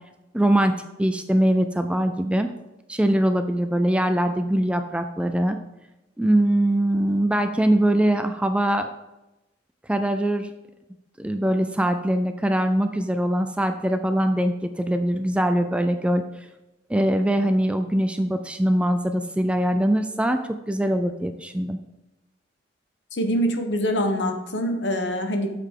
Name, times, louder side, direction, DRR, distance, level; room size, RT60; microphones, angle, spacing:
voice 1, 0.3-0.7 1.0-2.5 2.9-5.6 6.2-8.9 9.9-10.5 11.2-16.2 16.9-20.4 20.7-21.8, right 1 dB, 5° right, 8 dB, 0.3 m, -22 dB
voice 2, 23.1-25.5, equal, 65° left, 5 dB, 1.1 m, -24 dB
7.8 x 6.7 x 3.8 m, 0.97 s
head